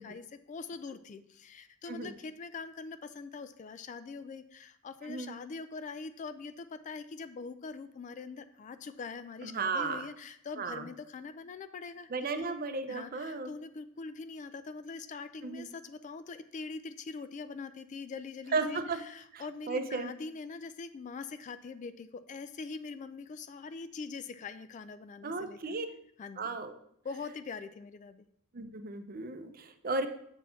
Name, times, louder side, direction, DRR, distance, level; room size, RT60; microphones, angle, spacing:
voice 1, 0.0-12.1 12.4-12.5 12.9-25.6 26.2-26.6 27.0-28.3, left 4 dB, 35° left, 12 dB, 0.3 m, -43 dB
voice 2, 5.0-5.3 9.4-10.1 10.6-10.9 12.1-13.5 15.4-15.7 18.5-19.0 19.3-20.1 25.2-25.9 26.4-26.7 28.5-30.1, right 3 dB, 40° right, 8 dB, 0.6 m, -34 dB
7.0 x 4.3 x 5.7 m, 0.70 s
head